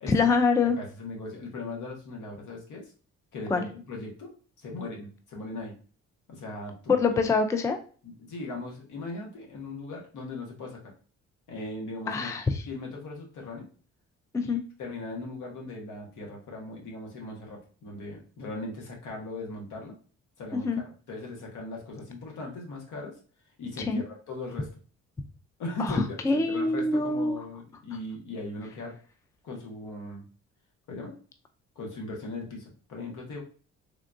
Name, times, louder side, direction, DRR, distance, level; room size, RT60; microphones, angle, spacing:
voice 1, 0.1-0.8 3.5-3.6 6.9-7.8 12.1-12.6 14.3-14.6 20.5-20.8 23.9-24.0 25.8-27.3, left 4 dB, 10° left, 7 dB, 0.3 m, -25 dB
voice 2, 0.6-2.9 3.3-4.3 4.6-5.7 6.3-7.2 8.0-10.8 11.5-12.3 12.7-13.7 14.4-14.5 14.8-20.0 20.4-23.2 23.6-24.7 25.6-28.9 29.4-30.2 30.9-31.2 31.8-33.4, left 2 dB, 80° left, 0 dB, 1.1 m, -39 dB
3.6 x 2.3 x 2.5 m, 0.40 s
cardioid pair, 90°, 30 cm